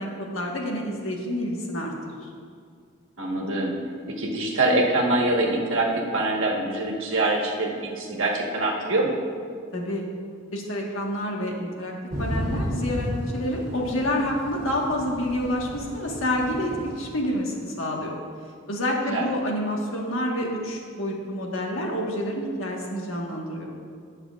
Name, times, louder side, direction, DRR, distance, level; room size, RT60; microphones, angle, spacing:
voice 1, 0.0-1.9 2.2-2.3 9.7-10.0 10.5-11.9 12.2-18.2 18.7-23.7, left 1 dB, 80° left, -1 dB, 1.5 m, -28 dB
voice 2, 3.2-3.8 4.1-9.2 19.1-19.3, right 2 dB, 75° right, -1 dB, 1.4 m, -24 dB
Thunder / Rain, 12.1-17.0, equal, 30° right, 2.1 m, -33 dB
19.0 x 6.5 x 2.5 m, 2.2 s
head